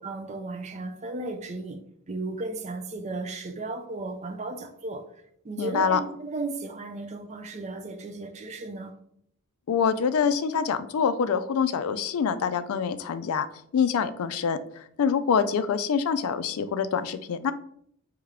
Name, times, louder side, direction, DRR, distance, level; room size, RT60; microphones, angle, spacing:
voice 1, 0.0-1.8 2.1-5.1 5.4-8.9, right 2 dB, 30° right, 0.4 m, -35 dB
voice 2, 5.6-6.0 9.7-13.5 13.7-17.5, left 6 dB, 70° left, 0.3 m, -25 dB
3.6 x 3.2 x 3.4 m
head